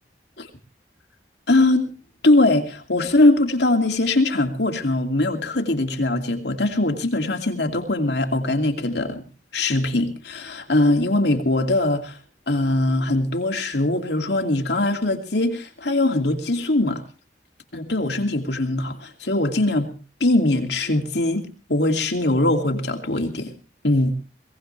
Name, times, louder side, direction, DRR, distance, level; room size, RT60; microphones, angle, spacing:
voice 1, 1.5-1.9 2.2-9.2 9.5-12.2 12.5-17.0 17.7-19.9 20.2-21.4 21.7-23.5 23.8-24.1, left 2 dB, 70° left, 4 dB, 2.5 m, -21 dB
22.5 x 18.0 x 3.3 m, 0.35 s
head